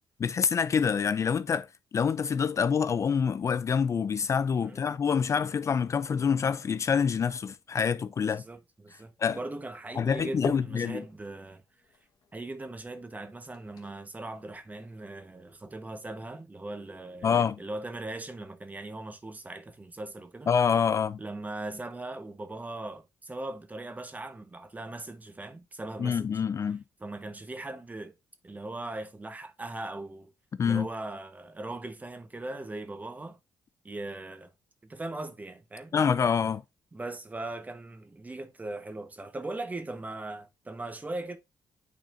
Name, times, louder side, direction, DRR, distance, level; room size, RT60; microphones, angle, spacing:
voice 1, 0.2-1.7 1.9-8.4 9.2-9.4 10.0-11.0 17.2-17.6 20.5-21.2 26.0-26.8 30.6-30.9 35.9-36.6, left 6 dB, 45° left, 0.4 m, -26 dB
voice 2, 8.2-11.6 12.3-20.5 21.2-26.3 27.0-28.1 28.4-30.3 30.6-33.4 33.8-34.5 34.8-35.9 36.9-41.4, right 2 dB, 20° right, 1.1 m, -39 dB
sound 1, 9.8-15.7, left 6 dB, 60° left, 1.2 m, -43 dB
9.0 x 4.1 x 2.6 m
cardioid pair, 70°, 7 cm